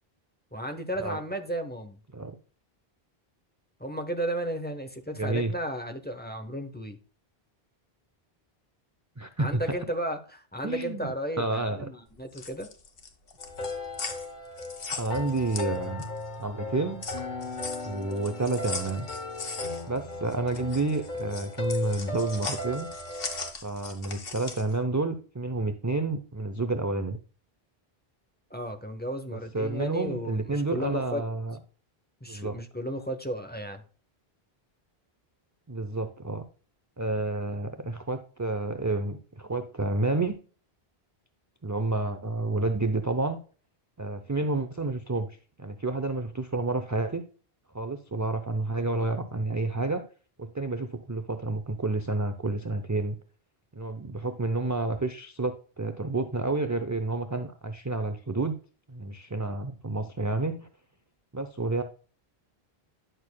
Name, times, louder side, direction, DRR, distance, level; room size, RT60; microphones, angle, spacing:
voice 1, 0.5-2.0 3.8-7.0 9.4-12.7 28.5-31.2 32.2-33.8, equal, 10° left, 6 dB, 1.0 m, -34 dB
voice 2, 5.2-5.5 9.2-9.6 10.6-11.9 15.0-16.0 16.4-17.0 17.8-19.1 19.9-22.9 23.6-27.2 29.3-31.6 32.3-32.6 35.7-36.5 37.0-40.3 41.6-43.4 44.0-47.2 47.7-50.0 50.4-53.2 53.7-58.5 58.9-60.7 61.3-61.8, right 2 dB, 25° right, 8 dB, 0.5 m, -30 dB
sound 1, 12.1-16.3 16.6-24.7, left 4 dB, 65° left, 1.5 m, -39 dB
sound 2, 13.4-23.5, left 2 dB, 50° left, 1.0 m, -37 dB
10.5 x 6.6 x 2.2 m, 0.38 s
omnidirectional pair, 1.0 m